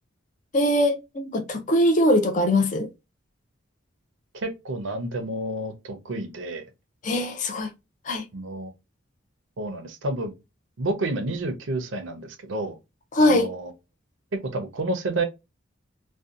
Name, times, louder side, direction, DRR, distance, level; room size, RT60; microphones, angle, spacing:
voice 1, 0.5-2.9 7.0-7.7 8.1-8.2 13.1-13.5, left 1 dB, 40° left, 0.5 m, -21 dB
voice 2, 4.3-6.7 8.3-8.7 9.6-10.3 10.8-12.7 13.2-13.7 14.5-15.2, right 2 dB, 70° right, 0.6 m, -30 dB
2.6 x 2.2 x 2.3 m
head